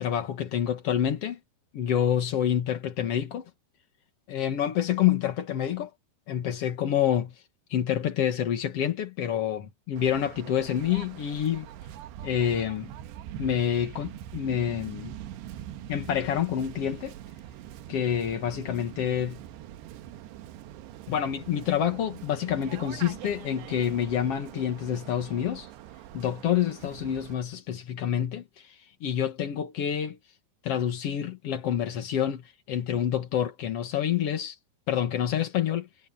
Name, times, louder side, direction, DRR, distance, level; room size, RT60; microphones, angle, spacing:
voice 1, 0.0-1.4 1.7-3.4 4.3-5.9 6.3-7.3 7.7-11.7 12.2-12.9 13.4-15.1 15.9-17.1 17.9-19.4 21.1-25.7 26.1-30.2 30.6-34.6 34.9-35.9, left 9 dB, 70° left, 1.4 m, -27 dB
Waves surf, 10.0-27.3, right 12 dB, 80° right, 3.2 m, -43 dB
omnidirectional pair, 5.0 m